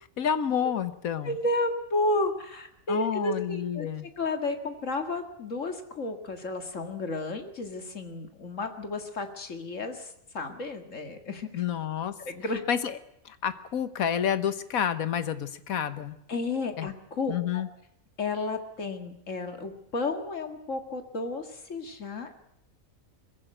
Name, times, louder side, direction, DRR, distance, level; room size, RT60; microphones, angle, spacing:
voice 1, 0.2-1.4 2.9-4.1 11.5-12.1 12.7-13.0 13.2-16.2 16.8-16.9 17.3-17.7, left 8 dB, 90° left, 12 dB, 1.5 m, -29 dB
voice 2, 1.2-3.9 4.2-11.6 12.2-12.6 16.3-17.6 18.2-22.3, left 2 dB, 65° left, 6 dB, 2.3 m, -32 dB
21.5 x 15.5 x 8.9 m, 0.76 s
omnidirectional pair, 1.4 m